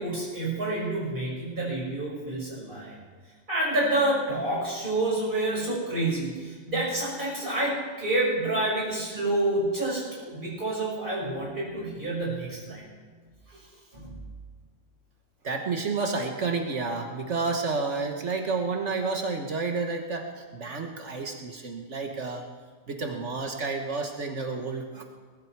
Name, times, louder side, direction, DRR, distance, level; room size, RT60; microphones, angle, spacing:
voice 1, 0.0-3.0 3.5-12.8 13.9-14.2, right 1 dB, 40° right, -5 dB, 6.1 m, -28 dB
voice 2, 15.4-22.4 22.9-25.0, right 4 dB, 65° right, 3 dB, 1.5 m, -30 dB
21.0 x 11.5 x 4.7 m, 1.5 s
omnidirectional pair, 1.4 m